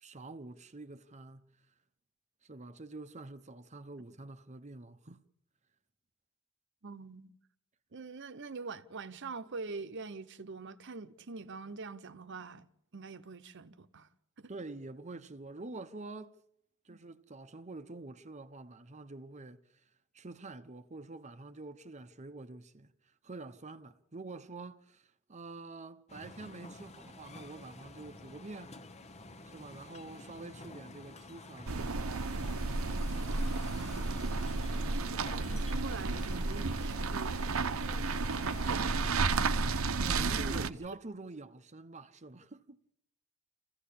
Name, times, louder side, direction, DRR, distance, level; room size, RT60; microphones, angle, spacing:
voice 1, 0.0-1.5 2.4-5.2 14.5-16.3 16.8-19.6 20.1-22.9 23.2-28.7 29.5-32.1 40.0-42.8, right 3 dB, 35° right, 0.9 m, -47 dB
voice 2, 6.8-7.3 7.9-14.1 14.4-14.5 16.9-17.0 33.7-34.5 35.0-37.8 38.7-39.3 39.8-40.6, right 4 dB, 60° right, 1.0 m, -45 dB
sound 1, 26.1-39.5, left 2 dB, 35° left, 1.2 m, -50 dB
sound 2, 31.7-40.7, right 3 dB, 85° right, 0.9 m, -32 dB
27.5 x 16.0 x 8.6 m
head